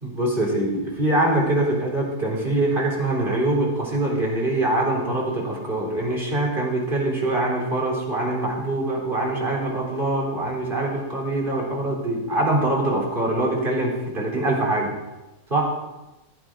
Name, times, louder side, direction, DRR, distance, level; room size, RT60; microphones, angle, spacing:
voice 1, 0.0-14.9 15.5-15.7, right 2 dB, 35° right, -3 dB, 4.0 m, -23 dB
16.0 x 9.6 x 5.1 m, 1.0 s
omnidirectional pair, 1.5 m